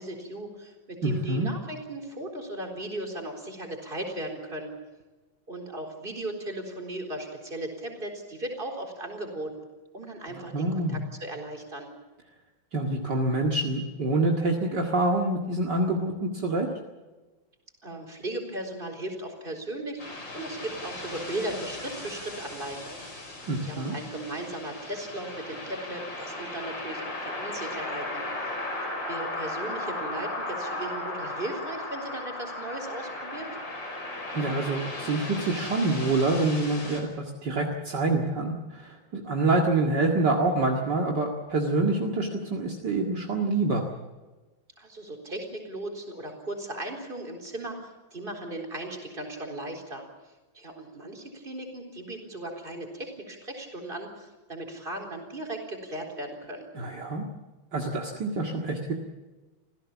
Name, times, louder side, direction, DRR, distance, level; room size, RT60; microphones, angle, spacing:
voice 1, 0.0-4.7 5.5-9.5 9.9-11.9 17.8-23.0 23.6-28.5 29.1-33.5 44.8-56.7, right 1 dB, 25° right, 3 dB, 4.2 m, -37 dB
voice 2, 1.0-1.5 10.5-11.0 12.7-16.7 23.5-23.9 34.3-43.8 56.7-57.3 57.7-58.9, right 2 dB, 55° right, 0 dB, 2.6 m, -26 dB
sound 1, 20.0-37.0, left 2 dB, 60° left, 5.8 m, -36 dB
27.0 x 16.5 x 7.3 m, 1.2 s
omnidirectional pair, 2.2 m